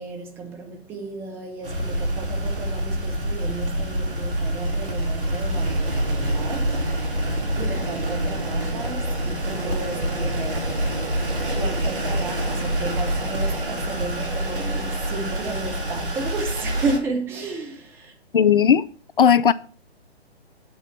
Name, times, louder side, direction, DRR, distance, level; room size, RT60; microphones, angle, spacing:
voice 1, 0.0-10.7 11.5-18.1, right 3 dB, 5° right, 0.6 m, -33 dB
hi speed smoother, 1.6-17.0, right 1 dB, 55° right, 2.8 m, -26 dB
voice 2, 18.3-18.8 19.2-19.5, left 8 dB, 55° left, 0.5 m, -16 dB
8.7 x 4.1 x 7.1 m
figure-of-eight pair, 130°, 32 cm